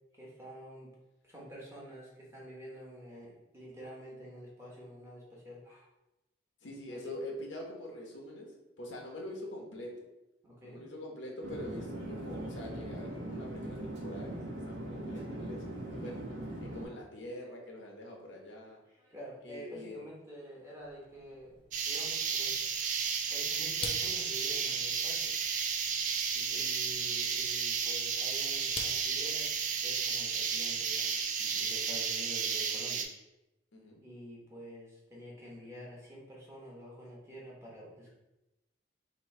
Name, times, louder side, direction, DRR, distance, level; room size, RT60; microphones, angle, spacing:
voice 1, 0.1-0.9 1.2-5.9 6.9-7.1 10.4-10.8 18.9-21.5 21.8-22.5 23.3-25.3 26.5-29.5 29.8-33.0 34.0-38.1, equal, 15° right, -5 dB, 0.9 m, -48 dB
voice 2, 6.6-8.5 8.8-9.9 10.6-15.6 15.9-16.2 16.6-18.8 19.4-20.0 26.3-26.6 33.7-34.0, left 1 dB, 90° left, -1 dB, 0.9 m, -44 dB
Chatter / Fixed-wing aircraft airplane, 11.4-16.8, right 1 dB, 80° right, 0.9 m, -40 dB
sound 1, 20.9-31.3, left 3 dB, 30° left, 0.4 m, -50 dB
sound 2, 21.7-33.0, right 6 dB, 40° right, 0.4 m, -33 dB
3.0 x 2.7 x 4.2 m, 0.96 s
head